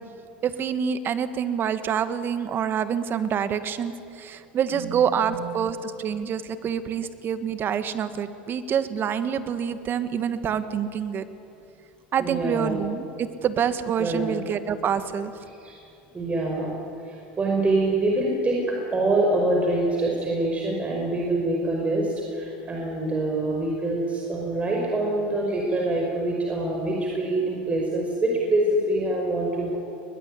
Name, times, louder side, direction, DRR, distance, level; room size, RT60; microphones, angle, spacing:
voice 1, 0.4-11.2 12.1-15.3, right 8 dB, 40° right, 11 dB, 1.9 m, -27 dB
voice 2, 4.7-5.5 12.2-12.8 14.0-14.3 15.6-15.8 16.1-29.8, right 2 dB, 25° right, -1 dB, 5.4 m, -25 dB
21.5 x 21.0 x 9.9 m, 2.7 s
hypercardioid pair, 90°, 6 cm